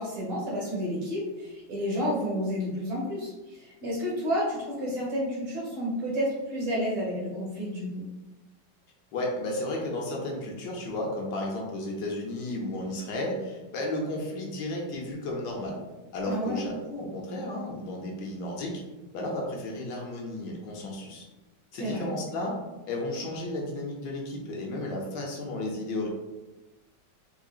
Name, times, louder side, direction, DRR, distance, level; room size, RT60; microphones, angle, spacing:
voice 1, 0.0-8.1 16.3-16.6 21.7-22.1, equal, 55° right, -6 dB, 1.7 m, -30 dB
voice 2, 9.1-15.8 16.1-18.8 19.1-21.3 21.7-22.6 22.9-26.1, left 1 dB, 75° left, -1 dB, 1.3 m, -33 dB
3.8 x 3.2 x 2.3 m, 1.1 s
omnidirectional pair, 2.0 m